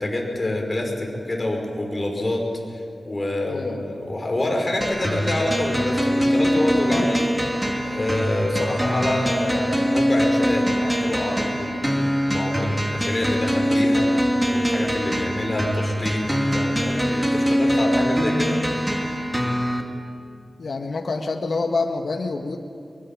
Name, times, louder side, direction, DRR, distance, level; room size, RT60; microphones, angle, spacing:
voice 1, 0.0-2.4 2.7-7.3 7.8-18.9, left 1 dB, 30° left, 1 dB, 5.5 m, -27 dB
voice 2, 3.5-4.0 6.9-7.1 18.0-18.1 20.6-22.6, left 3 dB, 65° left, 3 dB, 1.7 m, -27 dB
sound 1, 4.8-19.8, equal, 10° right, 2.8 m, -23 dB
23.0 x 22.0 x 7.5 m, 2.3 s
wide cardioid pair, 80°, 0 cm